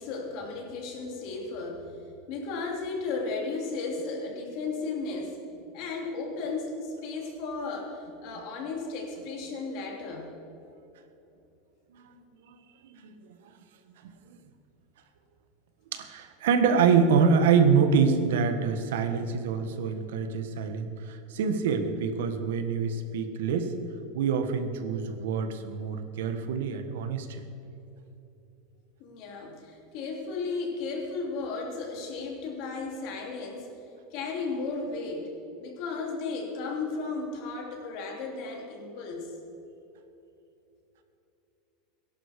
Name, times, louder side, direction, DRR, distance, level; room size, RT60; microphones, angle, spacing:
voice 1, 0.0-1.9 2.3-5.4 5.7-10.3 29.0-33.7 34.1-35.3 35.6-39.3, left 3 dB, 50° left, 1 dB, 3.1 m, -34 dB
voice 2, 12.8-13.1 14.0-14.4 15.9-23.7 24.1-27.4, right 6 dB, 85° right, 8 dB, 1.4 m, -26 dB
18.0 x 11.0 x 5.2 m, 2.9 s
supercardioid pair, 155°, 0 cm